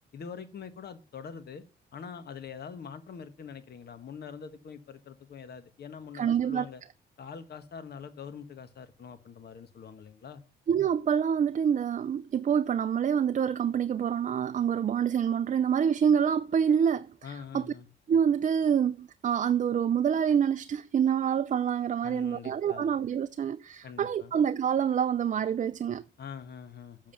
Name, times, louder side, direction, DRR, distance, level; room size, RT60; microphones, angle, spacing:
voice 1, 0.1-1.6 1.9-6.8 7.2-10.4 17.2-17.9 22.0-22.9 23.8-24.3 26.2-27.1, left 6 dB, 55° left, 1.5 m, -44 dB
voice 2, 6.1-6.6 10.7-17.1 17.5-17.6 18.1-26.0, right 8 dB, 40° right, 0.5 m, -26 dB
7.3 x 7.3 x 5.8 m
cardioid pair, 90°, 20 cm